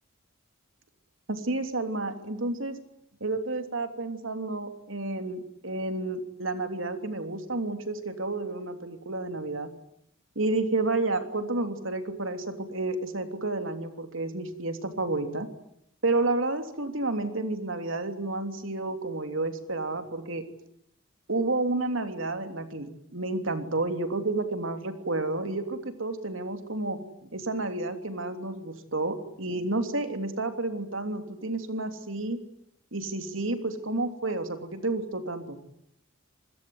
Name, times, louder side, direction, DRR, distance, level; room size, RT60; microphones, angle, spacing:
voice 1, 1.3-2.8 3.2-9.7 10.3-15.5 16.0-20.4 21.3-27.0 27.3-32.4 32.9-35.6, right 2 dB, 75° right, 7 dB, 3.2 m, -30 dB
27.5 x 21.0 x 9.5 m, 0.74 s
head